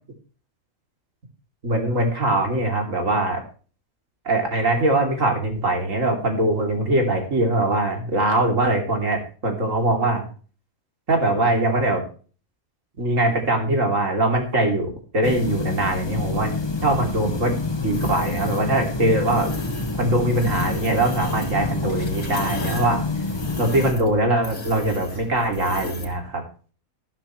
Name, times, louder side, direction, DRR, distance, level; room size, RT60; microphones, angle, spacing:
voice 1, 1.6-3.4 4.2-10.3 11.1-12.0 13.0-16.5 16.8-17.5 17.8-19.5 20.0-23.0 23.6-26.4, right 2 dB, 60° right, 3 dB, 3.4 m, -22 dB
sound 1, 15.2-23.9, left 3 dB, 20° left, 1.0 m, -28 dB
sound 2, 17.9-18.7 19.2-20.0 20.3-26.2, left 3 dB, 65° left, 2.5 m, -36 dB
12.0 x 11.5 x 3.1 m, 0.40 s
omnidirectional pair, 1.5 m